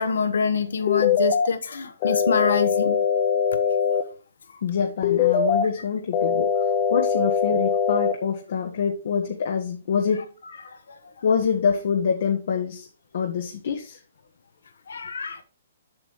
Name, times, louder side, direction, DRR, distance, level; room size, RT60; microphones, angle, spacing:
voice 1, 0.0-3.0 10.6-11.1 14.9-15.4, left 5 dB, 80° left, 1.4 m, -26 dB
sound 1, 0.9-1.5 2.0-4.0 5.0-5.6 6.1-8.1, left 7 dB, 35° left, 0.9 m, -22 dB
voice 2, 4.6-6.5 6.9-10.3 11.2-12.9 13.1-14.0, left 6 dB, 65° left, 1.2 m, -25 dB
7.8 x 6.3 x 3.7 m
hypercardioid pair, 145°, 0 cm